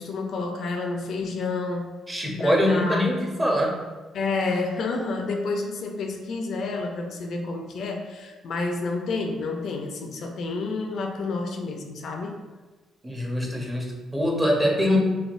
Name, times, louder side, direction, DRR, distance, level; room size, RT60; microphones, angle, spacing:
voice 1, 0.0-1.9 2.4-3.4 4.1-12.4, left 3 dB, 65° left, 3 dB, 0.3 m, -29 dB
voice 2, 2.1-3.8 13.0-15.0, equal, 20° right, -1 dB, 0.6 m, -23 dB
3.2 x 2.2 x 2.4 m, 1.2 s
cardioid pair, 90°, 0 cm